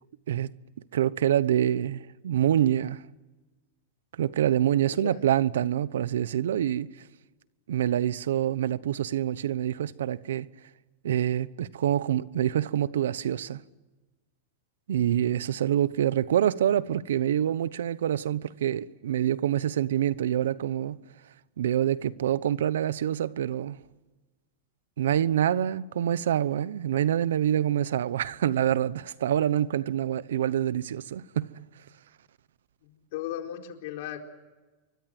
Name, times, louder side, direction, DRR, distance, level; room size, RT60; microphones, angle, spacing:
voice 1, 0.9-3.0 4.2-6.9 7.7-10.5 11.0-13.6 14.9-21.0 21.6-23.8 25.0-31.5, right 11 dB, 85° right, 1.0 m, -26 dB
voice 2, 4.9-5.2 32.9-34.2, left 12 dB, 60° left, 4.4 m, -36 dB
28.5 x 24.5 x 7.8 m
supercardioid pair, 140°, 0 cm